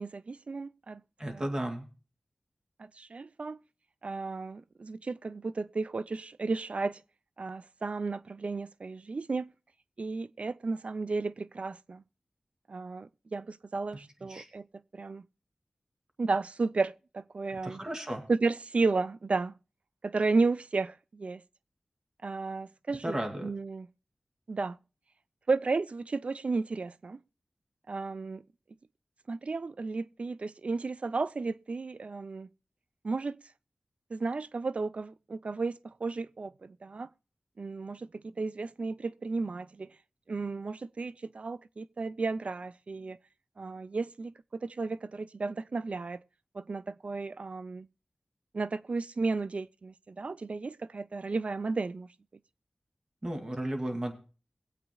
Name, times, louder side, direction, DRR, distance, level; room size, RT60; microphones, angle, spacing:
voice 1, 0.0-1.5 2.8-3.6 4.0-7.0 7.4-9.5 10.0-12.0 12.7-14.7 14.9-15.3 16.2-17.8 18.3-19.5 20.0-21.4 22.2-23.9 24.5-24.8 25.5-27.2 27.9-28.4 29.3-32.5 33.0-33.4 34.1-37.1 37.6-39.9 40.3-43.2 43.6-44.3 44.6-46.2 46.5-47.9 48.5-52.1, right 3 dB, 65° right, 0.4 m, -33 dB
voice 2, 1.2-1.9 14.3-14.5 17.5-18.2 23.0-23.5 53.2-54.1, right 1 dB, 30° right, 2.5 m, -34 dB
22.5 x 8.2 x 2.2 m
wide cardioid pair, 65°, 2 cm